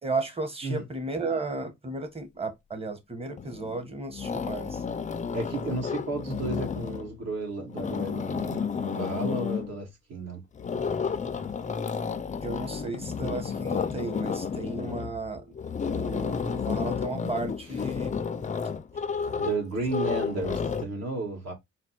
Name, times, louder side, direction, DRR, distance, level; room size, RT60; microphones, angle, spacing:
voice 1, 0.0-4.8 12.4-18.1, right 3 dB, 20° right, 1.2 m, -34 dB
sound 1, 3.4-3.8 4.1-7.1 7.6-9.7 10.6-20.9, left 6 dB, 25° left, 0.4 m, -31 dB
voice 2, 5.3-10.4 19.4-21.5, right 3 dB, 60° right, 2.1 m, -33 dB
4.1 x 2.2 x 4.4 m
cardioid pair, 90°, 30 cm